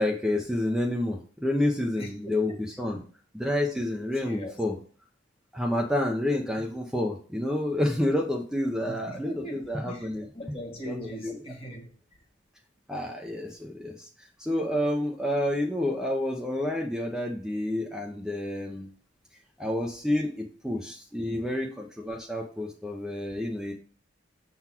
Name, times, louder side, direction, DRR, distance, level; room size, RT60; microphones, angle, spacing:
voice 1, 0.0-3.0 3.3-4.7 5.5-10.3 10.8-11.0 11.2-11.4 12.9-14.1 14.4-18.9 19.6-23.7, left 1 dB, 5° right, 0.7 m, -29 dB
voice 2, 2.0-2.6 2.9-3.0 4.2-4.5 8.8-10.1 10.3-12.0, equal, 30° left, 1.6 m, -40 dB
7.1 x 4.0 x 4.4 m
head